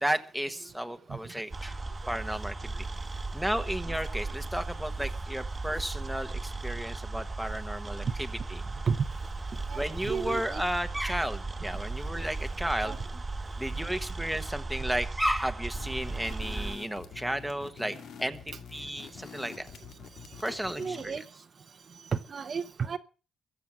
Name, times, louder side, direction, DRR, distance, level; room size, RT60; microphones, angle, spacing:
voice 1, 0.0-1.8 2.1-2.7 3.3-8.6 9.7-13.0 13.6-19.7 20.4-21.2, right 1 dB, ahead, 1.3 m, -33 dB
sound 1, 1.5-16.8, right 3 dB, 15° right, 1.2 m, -36 dB
voice 2, 9.7-10.6 12.8-13.0 20.8-21.2 22.1-23.0, right 6 dB, 35° right, 0.9 m, -32 dB
sound 2, 15.7-21.2, left 6 dB, 65° left, 2.1 m, -47 dB
22.5 x 7.9 x 6.0 m
cardioid pair, 150°, 0 cm